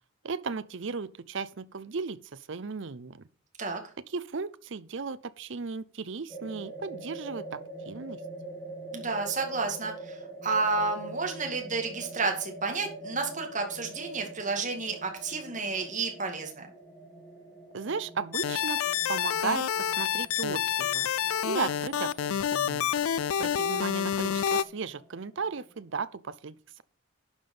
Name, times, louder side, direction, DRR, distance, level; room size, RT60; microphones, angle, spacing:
voice 1, 0.2-3.2 4.1-8.2 17.7-18.8 19.1-21.1 21.4-22.9 23.4-26.8, right 5 dB, 60° right, 0.6 m, -35 dB
sound 1, 6.3-25.9, right 2 dB, ahead, 2.6 m, -45 dB
voice 2, 8.9-16.7, right 4 dB, 35° right, 2.2 m, -31 dB
sound 2, 18.3-24.6, left 9 dB, 85° left, 0.4 m, -28 dB
11.5 x 5.2 x 5.5 m
head